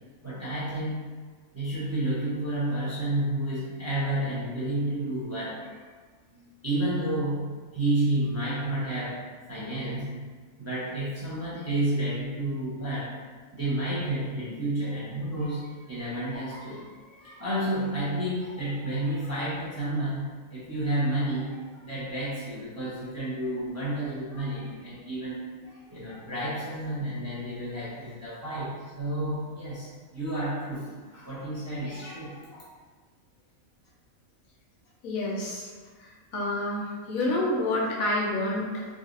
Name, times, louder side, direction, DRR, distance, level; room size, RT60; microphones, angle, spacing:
voice 1, 0.2-1.1 1.5-5.7 6.3-9.2 9.5-10.3 10.6-13.1 13.5-32.6, right 1 dB, 15° right, -9 dB, 0.7 m, -31 dB
voice 2, 35.0-35.7 36.0-38.9, left 1 dB, 70° left, -4 dB, 1.1 m, -28 dB
3.8 x 2.4 x 2.5 m, 1.5 s
omnidirectional pair, 1.5 m